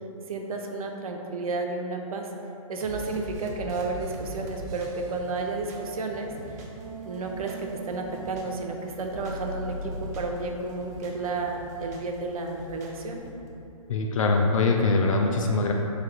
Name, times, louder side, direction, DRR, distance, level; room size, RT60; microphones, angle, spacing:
voice 1, 0.3-2.3 2.7-6.3 7.1-13.2, right 3 dB, 80° right, 2 dB, 0.5 m, -32 dB
sound 1, 2.8-6.8 7.1-8.6 8.9-10.4 10.7-12.2 12.5-13.5, right 2 dB, 30° right, 0.4 m, -42 dB
sound 2, 4.7-13.2, equal, 60° right, 0.9 m, -43 dB
voice 2, 13.9-15.7, left 3 dB, 65° left, 2 dB, 0.4 m, -23 dB
3.2 x 2.7 x 3.8 m, 2.9 s
hypercardioid pair, 155°, 18 cm